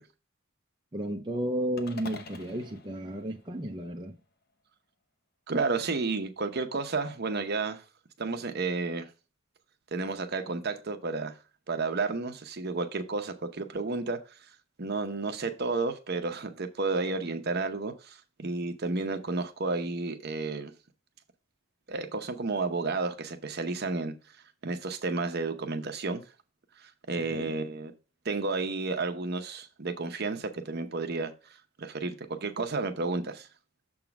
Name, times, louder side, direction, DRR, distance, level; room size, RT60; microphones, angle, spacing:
voice 1, 0.9-4.2 27.3-27.5, right 1 dB, 20° right, 0.6 m, -33 dB
sound 1, 1.8-4.1, left 3 dB, 50° left, 0.9 m, -46 dB
voice 2, 5.5-7.8 8.2-9.1 9.9-11.4 11.7-14.4 14.8-20.7 21.9-24.1 24.6-26.2 26.8-27.9 28.2-31.3 31.8-33.5, right 3 dB, 50° right, 0.8 m, -31 dB
7.1 x 3.7 x 5.9 m
head